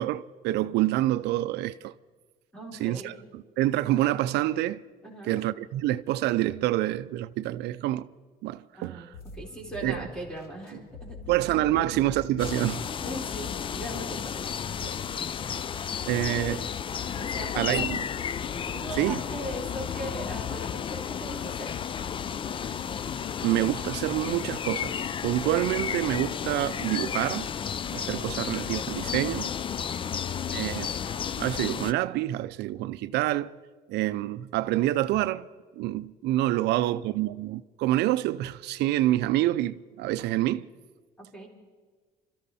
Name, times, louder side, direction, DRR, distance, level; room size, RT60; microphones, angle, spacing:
voice 1, 0.0-1.9 2.8-3.1 3.6-4.8 5.3-8.1 8.4-9.1 9.8-10.0 11.3-12.8 16.1-16.6 17.6-18.0 19.0-19.2 23.4-27.5 27.9-29.6 30.5-33.5 33.9-35.5 35.8-40.7, right 15 dB, 80° right, 0.5 m, -27 dB
voice 2, 2.5-3.2 5.0-5.4 8.8-9.1 9.3-11.4 11.7-11.9 13.0-14.4 14.8-14.9 16.2-16.7 17.1-17.9 18.7-21.8 29.8-30.1 36.5-37.0 41.2-41.5, right 1 dB, 5° left, 4.1 m, -39 dB
sound 1, 9.1-18.8, left 2 dB, 65° left, 2.2 m, -47 dB
sound 2, 12.4-31.9, left 8 dB, 30° left, 0.4 m, -32 dB
26.0 x 13.5 x 4.2 m
cardioid pair, 110°, 17 cm